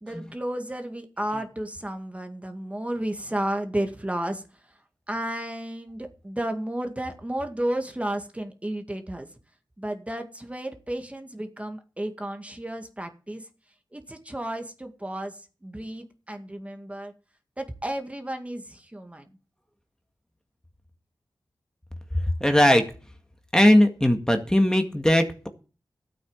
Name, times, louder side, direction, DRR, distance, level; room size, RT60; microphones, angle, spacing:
voice 1, 0.0-4.4 5.1-9.3 9.8-13.5 13.9-17.1 17.6-19.3, right 1 dB, 15° right, 6 dB, 2.1 m, -32 dB
voice 2, 22.4-22.8 23.5-25.5, left 1 dB, 10° left, 5 dB, 2.0 m, -19 dB
12.5 x 8.8 x 7.3 m, 0.35 s
cardioid pair, 55°, 8 cm